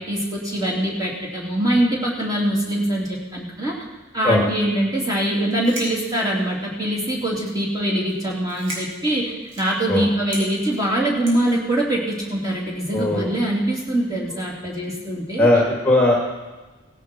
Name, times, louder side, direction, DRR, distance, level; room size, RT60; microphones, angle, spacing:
voice 1, 0.1-3.7 4.1-15.5, right 1 dB, 20° right, -4 dB, 3.0 m, -23 dB
Tile cutting, 5.5-6.7 7.3-7.7 8.0-8.2 8.4-9.8 10.3-10.4 11.3-11.6, right 1 dB, 70° right, 4.5 m, -36 dB
voice 2, 12.9-13.3 15.4-16.2, left 1 dB, 10° left, -2 dB, 1.8 m, -18 dB
17.0 x 11.0 x 4.5 m, 1.2 s
head